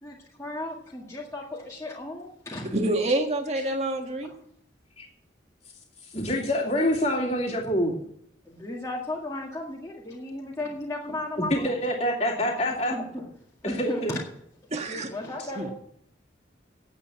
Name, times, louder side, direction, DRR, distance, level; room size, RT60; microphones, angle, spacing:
voice 1, 0.0-2.8 6.7-6.8 8.5-11.8 12.7-13.3 13.6-14.2 14.9-15.7, left 2 dB, 15° left, -4 dB, 1.8 m, -35 dB
voice 2, 2.7-4.3 14.7-15.1 15.6-15.7, right 2 dB, 35° right, 4 dB, 1.6 m, -27 dB
voice 3, 6.1-8.0 11.5-13.0 13.6-14.1, equal, 35° left, -6 dB, 2.4 m, -26 dB
9.2 x 8.4 x 8.6 m, 0.69 s
head